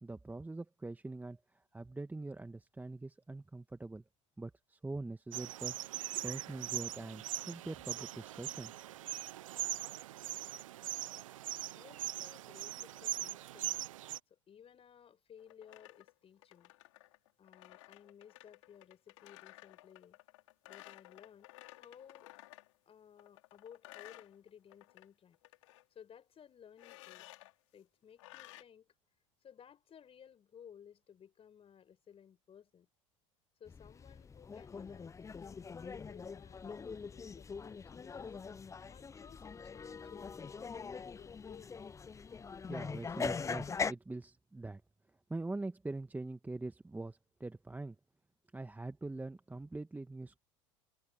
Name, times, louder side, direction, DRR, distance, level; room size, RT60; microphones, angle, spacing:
voice 1, 0.0-1.4 1.7-4.0 4.4-5.8 6.2-8.7 42.7-44.8 45.3-47.9 48.5-50.4, right 2 dB, 10° right, 1.6 m, -43 dB
sound 1, 5.3-14.2, right 14 dB, 80° right, 0.4 m, -41 dB
voice 2, 11.7-13.8 14.3-16.7 17.4-20.2 20.6-22.3 22.9-25.4 25.9-27.3 27.7-28.9 29.4-32.9 33.6-38.3 38.9-41.7, left 8 dB, 35° left, 6.3 m, -58 dB
sound 2, 15.4-22.7 23.2-25.1 25.3-25.8 26.8-27.5 28.2-28.6, left 18 dB, 70° left, 5.5 m, -56 dB
sound 3, 33.7-43.9, left 5 dB, 20° left, 0.7 m, -42 dB
hypercardioid pair, 75°, 17 cm